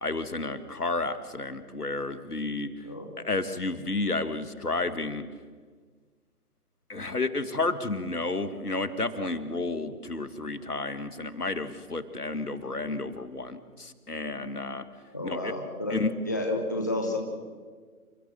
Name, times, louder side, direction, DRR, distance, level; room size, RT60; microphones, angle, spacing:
voice 1, 0.0-2.7 3.2-5.2 6.9-14.9 15.2-15.5 15.9-16.1, left 3 dB, 75° left, 12 dB, 2.0 m, -31 dB
voice 2, 15.1-15.9 16.2-17.2, left 2 dB, 10° left, 2 dB, 0.8 m, -30 dB
28.5 x 14.0 x 7.7 m, 1.5 s
figure-of-eight pair, 150°, 46 cm